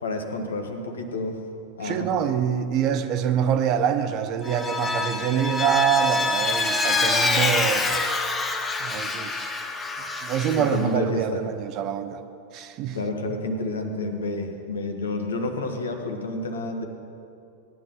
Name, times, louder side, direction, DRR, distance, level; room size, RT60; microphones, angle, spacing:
voice 1, 0.0-1.4 1.8-2.3 10.5-11.4 12.9-16.8, left 2 dB, 65° left, 4 dB, 1.5 m, -29 dB
voice 2, 1.8-8.0 8.8-9.5 10.2-12.2 12.5-13.0, right 8 dB, 40° right, 9 dB, 0.9 m, -25 dB
Vehicle, 4.4-10.8, left 3 dB, 15° left, 1.2 m, -26 dB
18.0 x 10.5 x 3.9 m, 2.6 s
figure-of-eight pair, 90°, 0 cm